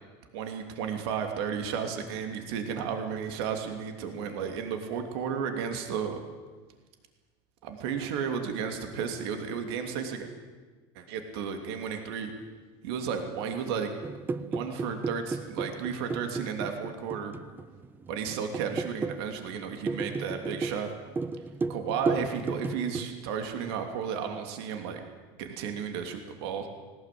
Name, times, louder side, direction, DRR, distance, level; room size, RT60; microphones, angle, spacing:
voice 1, 0.3-6.2 7.6-10.2 10.9-12.3 12.8-13.9 14.4-17.4 18.1-20.9 21.7-25.0 25.4-26.7, right 7 dB, 75° right, 5 dB, 3.0 m, -33 dB
sound 1, 14.0-23.1, right 4 dB, 15° right, 0.6 m, -34 dB
19.5 x 19.0 x 8.6 m, 1.4 s
supercardioid pair, 140°, 13 cm